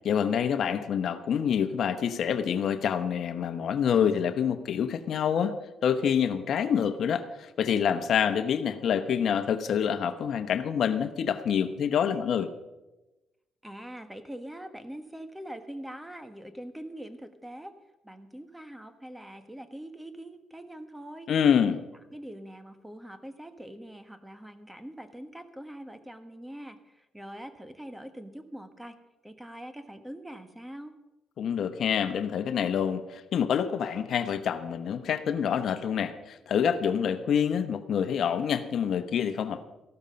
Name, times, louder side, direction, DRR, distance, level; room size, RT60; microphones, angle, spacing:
voice 1, 0.0-5.6 5.8-12.5 21.3-21.8 31.4-39.6, left 8 dB, 65° left, 10 dB, 0.9 m, -27 dB
voice 2, 13.6-17.7 18.0-21.3 22.1-26.8 27.1-28.9 29.2-30.9, right 1 dB, 10° right, 9 dB, 1.3 m, -43 dB
14.0 x 12.5 x 5.3 m, 1.0 s
cardioid pair, 90°, 0 cm